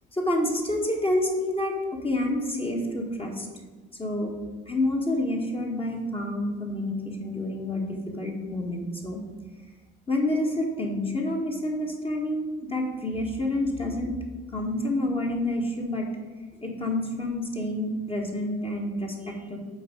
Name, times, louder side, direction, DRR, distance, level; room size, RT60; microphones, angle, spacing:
voice 1, 0.1-3.5 4.0-4.3 4.7-9.2 10.1-14.2 14.5-16.1 16.6-19.6, left 1 dB, 15° left, 0 dB, 1.5 m, -28 dB
8.6 x 4.0 x 5.2 m, 1.4 s
figure-of-eight pair, 50°, 33 cm